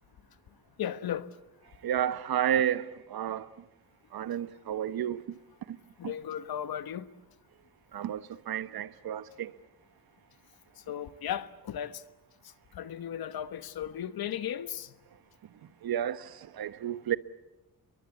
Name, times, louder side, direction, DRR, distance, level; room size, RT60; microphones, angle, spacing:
voice 1, 0.8-1.4 4.3-4.4 6.0-7.1 10.7-12.0 12.4-15.0, left 10 dB, 75° left, 1.3 m, -36 dB
voice 2, 1.8-3.5 4.1-5.2 5.7-5.8 6.0-6.1 7.9-9.5 15.8-17.2, right 10 dB, 75° right, 1.1 m, -31 dB
29.0 x 23.0 x 8.5 m
cardioid pair, 115°, 37 cm